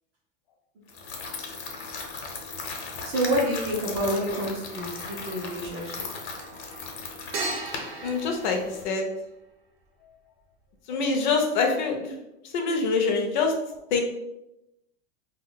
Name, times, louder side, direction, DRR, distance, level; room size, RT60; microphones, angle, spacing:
sound 1, 0.9-8.8, left 4 dB, 85° left, 0.8 m, -37 dB
sound 2, 2.0-2.1 4.7-9.5, right 3 dB, 65° right, 0.6 m, -39 dB
voice 1, 3.0-5.9, right 1 dB, 25° right, -2 dB, 0.4 m, -28 dB
voice 2, 8.0-9.1 10.9-12.1 12.4-13.6 13.9-14.0, left 4 dB, 45° left, 3 dB, 0.4 m, -25 dB
2.2 x 2.1 x 3.8 m, 0.90 s
supercardioid pair, 180°, 32 cm